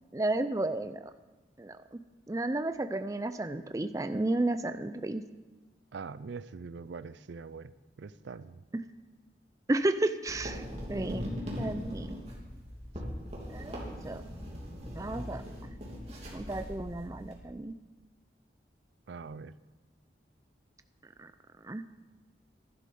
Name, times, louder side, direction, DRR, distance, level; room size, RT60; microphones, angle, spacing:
voice 1, 0.1-1.0 1.6-2.0 2.3-5.2 8.7-8.8 9.7-10.6 10.9-12.2 13.5-14.2 15.0-15.7 16.3-17.8 21.2-21.3 21.6-21.8, right 2 dB, 20° right, 10 dB, 0.4 m, -32 dB
voice 2, 5.9-7.7 8.0-8.6 19.1-19.5, right 5 dB, 75° right, 16 dB, 0.4 m, -43 dB
Sesion de Foley, 10.3-17.3, equal, 35° right, 2.8 m, -40 dB
11.5 x 11.5 x 5.4 m, 1.2 s
head